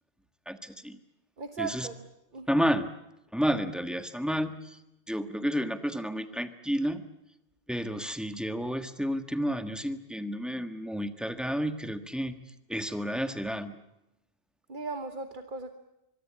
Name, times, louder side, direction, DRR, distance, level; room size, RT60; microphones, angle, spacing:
voice 1, 0.5-1.0 1.6-1.9 2.5-2.9 3.3-4.8 5.1-7.0 7.7-12.4 12.7-13.8, equal, ahead, 9 dB, 1.4 m, -31 dB
voice 2, 1.4-2.1 2.3-2.6 14.7-15.7, right 4 dB, 50° right, 8 dB, 1.4 m, -37 dB
24.5 x 23.0 x 8.6 m, 0.88 s
omnidirectional pair, 1.1 m